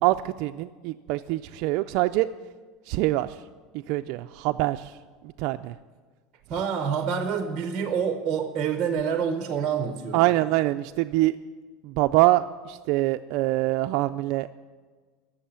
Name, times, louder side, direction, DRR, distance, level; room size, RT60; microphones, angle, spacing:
voice 1, 0.0-2.3 2.9-3.4 3.7-5.0 5.2-5.8 10.1-11.4 11.8-14.5, right 17 dB, 50° right, 9 dB, 0.3 m, -24 dB
voice 2, 6.5-10.2, right 7 dB, 25° right, 7 dB, 0.8 m, -27 dB
13.5 x 6.8 x 9.9 m, 1.4 s
cardioid pair, 175°, 0 cm